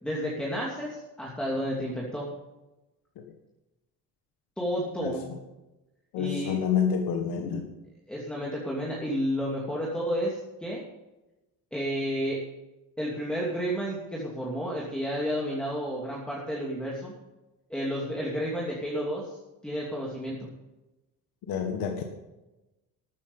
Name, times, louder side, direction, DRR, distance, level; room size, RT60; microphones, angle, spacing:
voice 1, 0.0-2.3 4.6-5.3 6.2-6.6 8.1-10.8 11.7-12.4 13.0-17.1 17.7-19.4 19.6-20.5, equal, 5° left, -4 dB, 2.7 m, -31 dB
voice 2, 6.1-7.7 21.5-22.0, left 7 dB, 90° left, 3 dB, 1.7 m, -28 dB
13.5 x 9.7 x 5.5 m, 1.0 s
cardioid pair, 130°, 34 cm